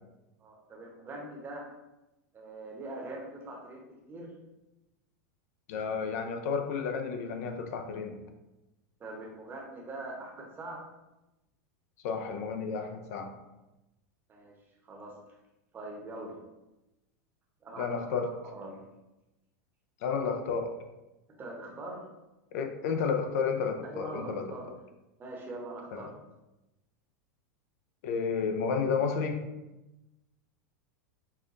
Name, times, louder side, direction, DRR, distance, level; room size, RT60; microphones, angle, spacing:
voice 1, 0.4-1.7 2.3-4.3 9.0-10.8 14.3-14.6 14.8-15.1 15.7-16.4 17.6-18.8 21.3-22.0 23.8-24.7 25.2-26.1, right 2 dB, 25° right, -1 dB, 0.8 m, -43 dB
voice 2, 5.7-8.2 12.0-13.3 17.8-18.3 20.0-20.7 22.5-24.5 25.9-26.1 28.0-29.4, left 5 dB, 65° left, 5 dB, 0.5 m, -31 dB
5.5 x 2.2 x 2.5 m, 1.0 s
supercardioid pair, 120°, 9 cm